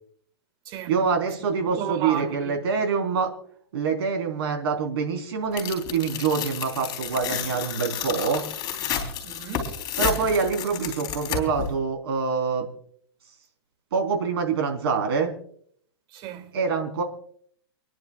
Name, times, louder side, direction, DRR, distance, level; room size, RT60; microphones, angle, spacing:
voice 1, 0.9-3.3 3.7-8.4 10.0-12.7 13.9-15.3 16.5-17.0, right 5 dB, 70° right, 3.8 m, -25 dB
voice 2, 1.8-2.6 9.2-9.8 16.1-16.5, right 9 dB, 35° right, 1.8 m, -34 dB
Tearing, 5.6-11.7, left 8 dB, 30° left, 3.4 m, -31 dB
28.5 x 10.5 x 2.4 m
hypercardioid pair, 140°, 14 cm